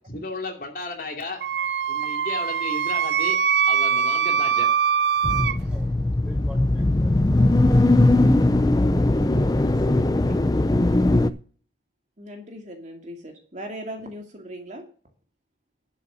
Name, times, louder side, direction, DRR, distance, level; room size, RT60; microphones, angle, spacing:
voice 1, 0.1-1.4 1.9-3.4 3.7-4.7, left 2 dB, 50° left, 2 dB, 2.7 m, -33 dB
Wind instrument woodwind instrument, 1.4-5.6, right 7 dB, 70° right, 0.4 m, -22 dB
sound 1, 5.2-11.3, left 2 dB, 20° left, 0.4 m, -19 dB
voice 2, 5.4-7.2 7.5-8.2 9.6-9.8, equal, 5° right, 1 dB, 1.1 m, -47 dB
voice 3, 12.2-14.8, equal, 40° right, 3 dB, 2.3 m, -38 dB
11.5 x 5.4 x 6.9 m, 0.43 s
head